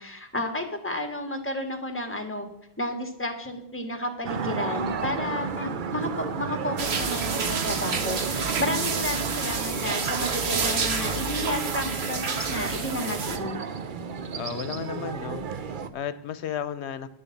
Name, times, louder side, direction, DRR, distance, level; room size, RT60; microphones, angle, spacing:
voice 1, 0.0-2.5 2.8-13.6, left 1 dB, 10° left, 5 dB, 1.8 m, -32 dB
sound 1, 4.2-15.9, right 5 dB, 55° right, 0.8 m, -33 dB
sound 2, 6.8-13.4, right 5 dB, 75° right, 1.4 m, -29 dB
voice 2, 14.3-17.1, left 8 dB, 85° left, 13 dB, 1.0 m, -34 dB
10.5 x 6.9 x 8.4 m, 0.76 s
omnidirectional pair, 1.1 m